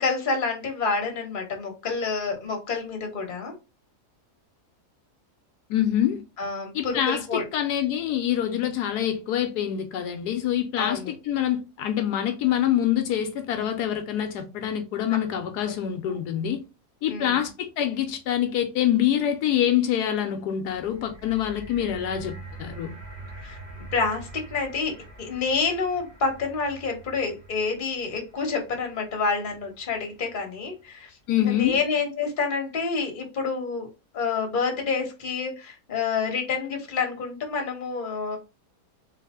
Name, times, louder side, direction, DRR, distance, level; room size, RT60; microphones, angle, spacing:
voice 1, 0.0-3.6 6.4-7.4 10.8-11.1 15.7-15.8 17.1-17.5 23.3-23.6 23.9-31.1 31.4-33.9 34.1-38.4, left 4 dB, 35° left, 1.1 m, -28 dB
voice 2, 5.7-6.2 6.7-16.6 17.0-22.9 31.3-31.8, left 10 dB, 80° left, 1.1 m, -25 dB
sound 1, 20.7-30.9 31.6-31.7, right 2 dB, 30° right, 1.0 m, -45 dB
3.2 x 3.2 x 3.6 m
omnidirectional pair, 1.7 m